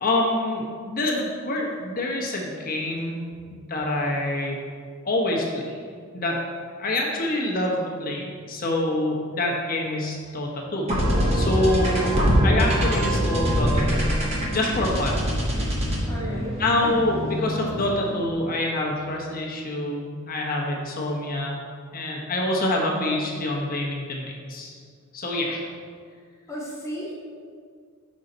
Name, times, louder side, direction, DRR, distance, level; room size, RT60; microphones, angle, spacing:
voice 1, 0.0-3.2 3.5-4.6 5.0-5.7 6.1-6.4 6.8-10.9 11.3-12.1 12.4-14.0 14.5-15.3 16.6-21.6 21.9-24.8 25.1-25.6, left 1 dB, 45° left, -1 dB, 1.0 m, -26 dB
sound 1, 10.9-18.2, equal, 30° right, 1.1 m, -24 dB
voice 2, 16.1-16.9 26.5-27.1, equal, 15° left, -7 dB, 1.1 m, -34 dB
5.6 x 5.4 x 3.9 m, 2.1 s
head